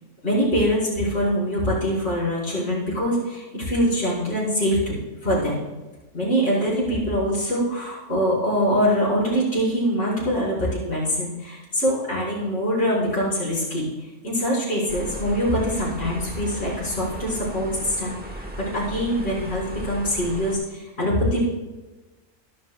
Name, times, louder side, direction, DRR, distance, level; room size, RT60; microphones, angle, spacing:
voice 1, 0.2-4.9 5.2-5.6 6.1-13.9 14.2-21.4, equal, 45° left, -9 dB, 5.0 m, -24 dB
sound 1, 14.9-20.5, right 1 dB, 5° right, 1.4 m, -36 dB
23.5 x 10.0 x 2.3 m, 1.2 s
omnidirectional pair, 1.6 m